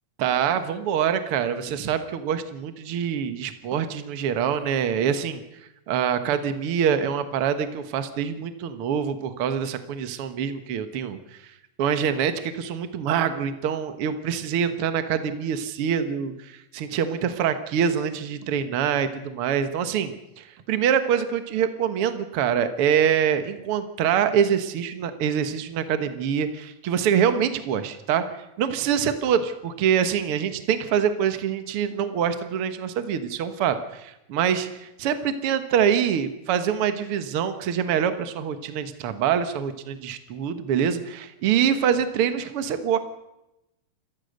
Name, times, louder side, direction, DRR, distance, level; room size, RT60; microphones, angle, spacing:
voice 1, 0.2-5.4 5.9-11.2 11.8-28.2 28.6-43.0, right 8 dB, 90° right, 10 dB, 1.2 m, -25 dB
28.0 x 15.0 x 6.5 m, 0.91 s
omnidirectional pair, 4.5 m